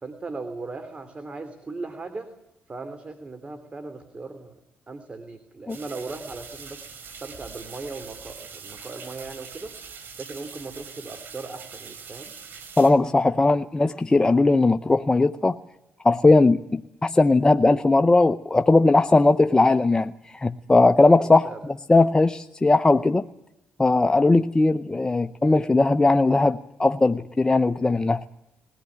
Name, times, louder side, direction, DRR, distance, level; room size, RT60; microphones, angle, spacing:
voice 1, 0.0-2.3 2.7-4.6 4.9-9.7 10.1-12.3 21.1-21.6, right 3 dB, 35° right, 8 dB, 3.0 m, -38 dB
sound 1, 5.7-12.9, right 6 dB, 70° right, 4.7 m, -42 dB
voice 2, 12.8-15.6 16.0-23.2 23.8-28.3, left 2 dB, 20° left, 10 dB, 0.8 m, -19 dB
21.0 x 17.0 x 9.9 m, 0.92 s
cardioid pair, 75°, 4 cm